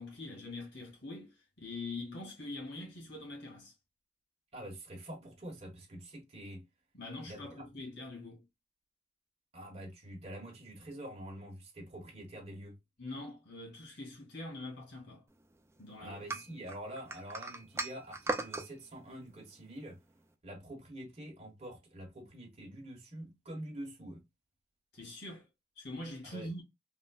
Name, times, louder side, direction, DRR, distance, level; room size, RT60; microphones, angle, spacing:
voice 1, 0.0-3.7 6.9-8.4 13.0-15.2 15.8-16.3 24.9-25.5 25.8-26.6, left 2 dB, 90° left, 1.7 m, -44 dB
voice 2, 4.5-6.6 7.2-7.9 9.5-12.8 16.0-20.0 20.4-24.2 26.2-26.5, right 1 dB, 35° right, 1.1 m, -46 dB
sound 1, 16.3-18.7, right 3 dB, 15° right, 0.3 m, -37 dB
3.7 x 2.1 x 2.2 m
head